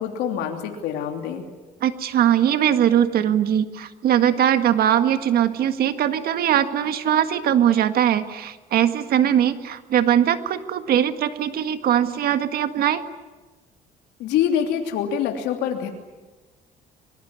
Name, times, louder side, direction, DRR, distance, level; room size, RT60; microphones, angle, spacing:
voice 1, 0.0-1.4 14.2-15.9, left 9 dB, 85° left, 3 dB, 3.1 m, -25 dB
voice 2, 1.8-13.0, right 10 dB, 65° right, 9 dB, 1.8 m, -20 dB
25.5 x 21.5 x 9.7 m, 1.2 s
cardioid pair, 110°, 17 cm